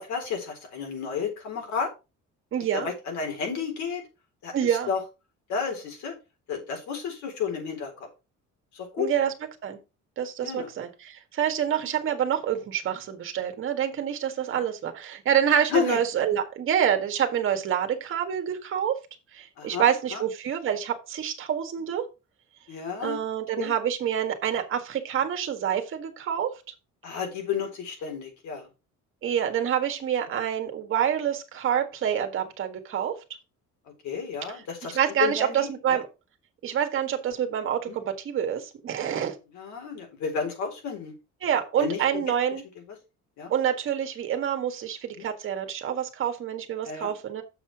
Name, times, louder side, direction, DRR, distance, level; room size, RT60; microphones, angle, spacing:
voice 1, 0.0-1.9 2.7-4.0 4.4-5.0 5.5-6.2 6.5-7.9 8.7-9.1 10.4-10.7 15.7-16.0 19.6-20.2 22.7-23.2 23.6-23.7 27.0-28.7 30.3-30.4 34.0-36.0 37.9-38.0 39.5-41.1 41.8-42.2 43.4-43.5 45.2-45.3 46.8-47.1, left 6 dB, 65° left, 3 dB, 3.9 m, -31 dB
voice 2, 2.5-2.9 4.5-4.9 9.0-9.3 9.6-9.8 10.2-19.0 19.3-22.0 23.0-26.5 29.2-33.1 34.9-36.1 36.6-39.3 41.4-42.6 43.5-47.4, right 9 dB, 45° right, 6 dB, 1.6 m, -27 dB
7.1 x 6.7 x 4.8 m, 0.28 s
cardioid pair, 170°, 30 cm